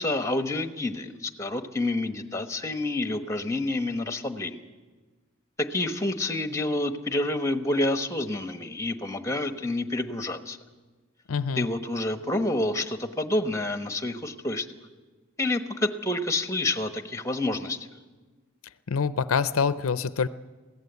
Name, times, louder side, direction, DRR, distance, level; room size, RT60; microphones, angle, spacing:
voice 1, 0.0-4.6 5.6-10.6 11.6-14.7 15.4-17.9, left 2 dB, 15° left, 8 dB, 1.1 m, -28 dB
voice 2, 11.3-11.7 18.9-20.3, left 5 dB, 80° left, 14 dB, 0.6 m, -25 dB
22.0 x 16.5 x 8.1 m, 1.3 s
head